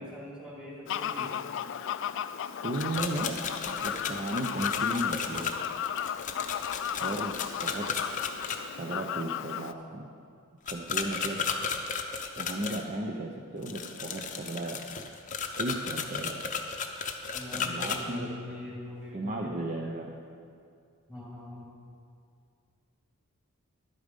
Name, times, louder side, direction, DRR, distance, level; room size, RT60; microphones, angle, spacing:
voice 1, 0.0-1.4 17.3-19.6 21.1-21.7, left 1 dB, 5° right, -4 dB, 2.1 m, -42 dB
Fowl, 0.9-9.7, left 9 dB, 55° left, 0.3 m, -34 dB
voice 2, 2.6-5.5 7.0-7.3 7.6-7.9 8.8-10.1 10.7-11.4 12.3-14.8 15.6-16.4 17.5-18.3 19.1-20.1, right 1 dB, 35° right, 0 dB, 0.6 m, -35 dB
sound 1, 2.7-8.6 10.7-12.8 13.6-18.0, left 6 dB, 35° left, 0.7 m, -34 dB
11.0 x 8.4 x 5.3 m, 2.3 s
head